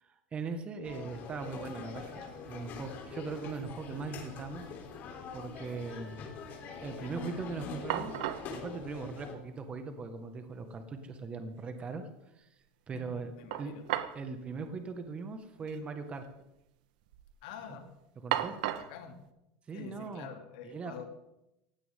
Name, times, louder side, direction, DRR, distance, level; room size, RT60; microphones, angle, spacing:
voice 1, 0.0-4.6 5.3-6.3 6.8-8.2 8.5-12.1 12.4-12.5 12.9-13.3 13.6-13.7 14.2-16.2 18.2-18.6 19.7-20.3 20.6-21.0, right 4 dB, 25° right, 7 dB, 1.6 m, -40 dB
sound 1, 0.8-9.3, left 5 dB, 45° left, 3.6 m, -44 dB
sound 2, 1.4-1.5 1.7-2.4 2.7-3.6 3.9-4.0 7.4-7.5 7.9-8.5 9.7-9.8 10.1-10.2 13.5-14.3 14.5-14.7 15.6-15.8 16.1-16.6 17.0-17.4 18.3-19.0, right 12 dB, 75° right, 1.2 m, -36 dB
Percussion, 5.6-10.4, left 5 dB, 50° right, 6.7 m, -62 dB
voice 2, 12.9-13.8 17.4-17.9 18.7-19.2 19.7-21.0, left 7 dB, 70° left, 4 dB, 2.9 m, -47 dB
18.5 x 16.5 x 3.7 m, 0.88 s
supercardioid pair, 120°, 4 cm